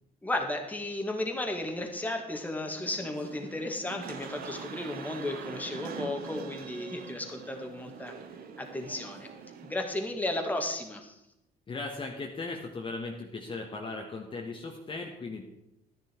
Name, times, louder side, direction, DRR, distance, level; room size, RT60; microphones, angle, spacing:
voice 1, 0.2-8.2 8.6-9.3 9.6-11.2, left 1 dB, 10° left, 3 dB, 1.9 m, -34 dB
sound 1, 2.8-9.7, right 7 dB, 60° right, 1.2 m, -44 dB
voice 2, 11.7-15.5, left 3 dB, 30° left, 1 dB, 1.4 m, -37 dB
12.0 x 10.5 x 4.5 m, 0.86 s
cardioid pair, 110°, 17 cm